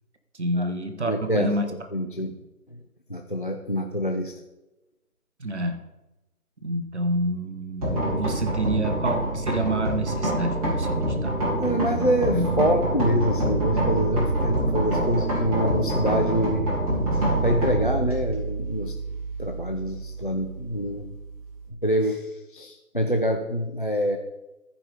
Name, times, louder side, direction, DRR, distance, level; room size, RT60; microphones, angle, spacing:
voice 1, 0.3-1.7 2.2-2.3 5.4-5.8 6.6-11.4 12.3-13.1, right 1 dB, 50° right, 6 dB, 1.1 m, -28 dB
voice 2, 1.1-1.5 1.9-2.3 3.1-4.3 11.6-16.8 17.1-18.9 19.4-21.1 21.8-24.2, equal, 35° left, 4 dB, 0.5 m, -26 dB
sound 1, 7.8-21.7, right 1 dB, 25° right, 3.2 m, -26 dB
14.0 x 5.3 x 4.8 m, 0.97 s
figure-of-eight pair, 160°, 45 cm